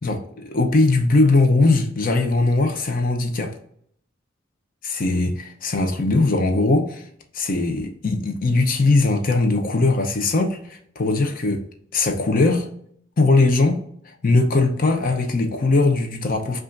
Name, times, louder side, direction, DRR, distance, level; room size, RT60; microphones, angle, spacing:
voice 1, 0.0-3.5 4.8-7.0 7.3-11.6 11.9-12.7 13.2-13.8 14.2-16.6, left 3 dB, 45° left, 0.6 m, -20 dB
5.4 x 2.5 x 2.5 m
head